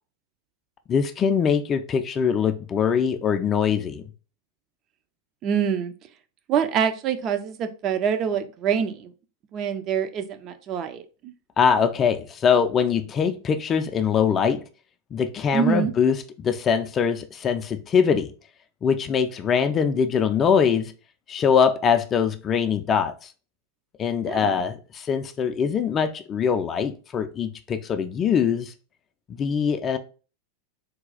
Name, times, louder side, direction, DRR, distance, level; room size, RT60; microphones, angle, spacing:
voice 1, 0.9-4.0 11.6-14.6 15.1-18.3 18.8-20.9 21.3-23.1 24.0-28.7 29.3-30.0, left 7 dB, 25° left, 0.4 m, -22 dB
voice 2, 5.4-5.9 6.5-9.1 9.5-11.3 15.5-15.9 24.2-24.5, right 7 dB, 35° right, 0.5 m, -25 dB
4.0 x 2.3 x 3.8 m
figure-of-eight pair, 90°, 0 cm